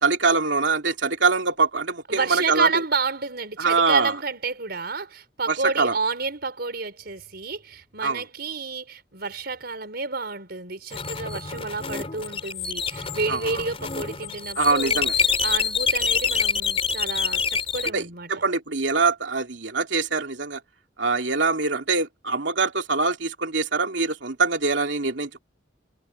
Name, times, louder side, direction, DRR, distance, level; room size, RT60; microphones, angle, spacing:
voice 1, 0.0-2.8 3.6-4.1 5.5-5.9 8.0-8.2 13.3-13.4 14.6-15.1 17.9-20.6 21.0-25.4, right 4 dB, 80° right, 2.8 m, -23 dB
voice 2, 2.1-18.3, right 4 dB, 60° right, 5.4 m, -30 dB
sound 1, 10.9-17.9, left 6 dB, 35° left, 3.8 m, -26 dB
head